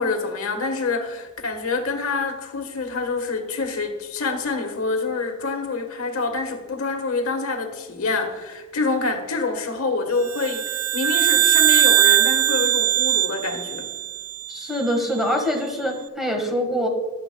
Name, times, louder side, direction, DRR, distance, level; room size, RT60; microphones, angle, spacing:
voice 1, 0.0-13.9, left 3 dB, 70° left, 1.3 m, -26 dB
sound 1, 10.3-14.8, right 11 dB, 70° right, 0.4 m, -20 dB
voice 2, 14.5-16.9, equal, ahead, 1.5 m, -24 dB
14.5 x 11.0 x 2.2 m
head